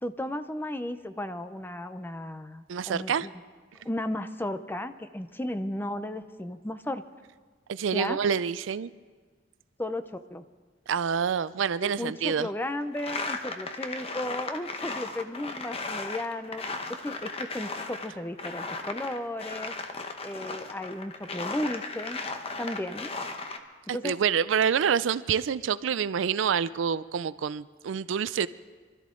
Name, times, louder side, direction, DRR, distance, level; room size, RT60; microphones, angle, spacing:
voice 1, 0.0-3.3 3.8-7.0 7.9-8.2 9.8-10.4 11.8-16.6 17.0-19.7 20.2-22.2 22.6-23.1 23.9-24.1, left 1 dB, 10° left, 11 dB, 0.5 m, -34 dB
voice 2, 2.7-3.3 7.7-8.9 10.9-12.5 23.9-28.5, right 7 dB, 75° right, 16 dB, 0.4 m, -27 dB
sound 1, 13.0-18.1 18.4-23.6, left 3 dB, 30° left, 0.9 m, -36 dB
24.5 x 13.0 x 3.8 m, 1.4 s
head